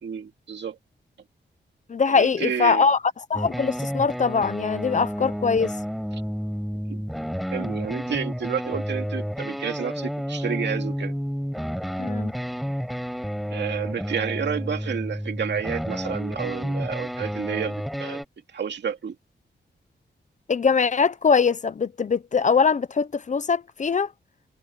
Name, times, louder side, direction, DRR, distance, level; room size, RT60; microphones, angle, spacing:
voice 1, 0.0-0.8 2.1-2.9 6.1-6.2 6.9-7.0 7.5-11.1 13.5-18.2 18.5-19.2, right 7 dB, 65° right, 2.5 m, -30 dB
voice 2, 1.9-3.0 3.3-5.7 12.0-12.3 20.5-24.1, left 5 dB, 40° left, 0.8 m, -22 dB
sound 1, 3.3-18.2, equal, ahead, 7.7 m, -30 dB
wide cardioid pair, 135°, 19 cm